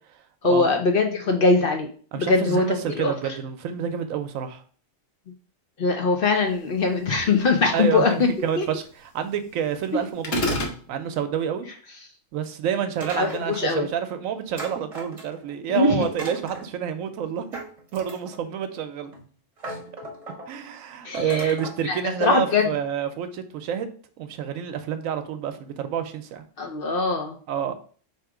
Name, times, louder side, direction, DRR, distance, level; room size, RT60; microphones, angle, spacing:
voice 1, 0.4-3.1 5.8-8.7 13.2-13.9 15.7-16.0 21.0-21.5 21.8-22.7 26.6-27.4, left 3 dB, 55° left, 4 dB, 0.7 m, -22 dB
voice 2, 2.1-4.6 7.7-11.7 12.3-17.5 17.9-19.1 20.5-23.9 24.2-26.4 27.5-27.7, right 8 dB, 90° right, 8 dB, 1.0 m, -28 dB
sound 1, 10.2-10.8, left 1 dB, 70° left, 1.2 m, -24 dB
sound 2, 13.0-13.8 14.6-15.5 16.0-16.7 17.5-18.5 19.1-19.2 19.6-20.5 21.1-21.8, right 2 dB, 30° right, 0.9 m, -37 dB
3.6 x 2.9 x 4.8 m, 0.43 s
omnidirectional pair, 1.4 m